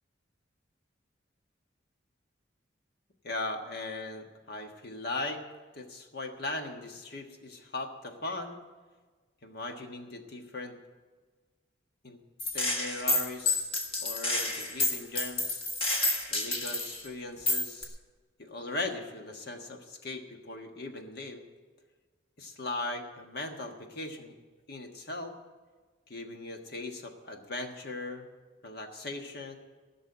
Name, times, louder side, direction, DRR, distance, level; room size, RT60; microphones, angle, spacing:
voice 1, 3.2-5.4 5.7-8.6 9.4-10.8 12.0-12.2 12.5-13.7 14.0-15.6 16.3-18.0 18.4-21.4 22.4-24.3 24.7-25.4 26.1-28.3 28.6-29.6, left 2 dB, 55° left, 4 dB, 1.5 m, -39 dB
Gunshot gunfire, 12.4-17.0 17.5-17.8, left 2 dB, 30° left, 1.5 m, -29 dB
15.5 x 6.3 x 9.6 m, 1.4 s
head